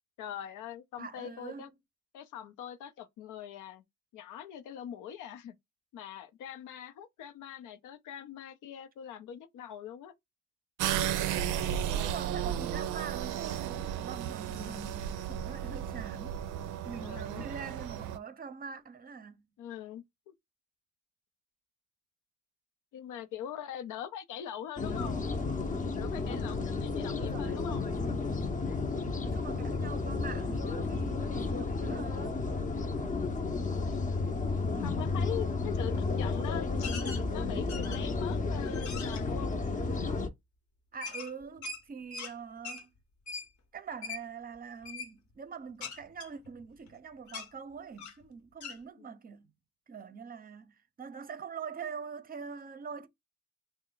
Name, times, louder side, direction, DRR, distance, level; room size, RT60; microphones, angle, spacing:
voice 1, 0.2-1.7 2.1-3.8 4.1-5.5 5.9-10.1 14.5-14.9 17.0-17.5 19.6-20.3 22.9-25.2 25.5-27.8 33.1-33.6 33.9-34.0 34.8-39.6 49.0-49.1, left 10 dB, 85° left, 0.6 m, -43 dB
voice 2, 1.0-1.7 11.9-16.5 16.8-19.5 27.2-27.6 29.2-32.6 40.9-42.9 43.7-49.5 49.9-53.1, right 6 dB, 30° right, 0.6 m, -44 dB
sound 1, 10.8-18.2, right 10 dB, 90° right, 0.5 m, -34 dB
sound 2, 24.8-40.3, left 3 dB, 25° left, 0.6 m, -32 dB
sound 3, 36.8-37.2 37.7-38.2 38.7-39.2 41.0-42.3 42.6-42.8 43.3-43.5 44.0-44.2 44.8-45.1 45.8-46.9 47.3-47.5 48.0-48.2 48.6-48.8, left 5 dB, 65° left, 1.0 m, -41 dB
3.2 x 2.1 x 3.8 m
cardioid pair, 90°, 30 cm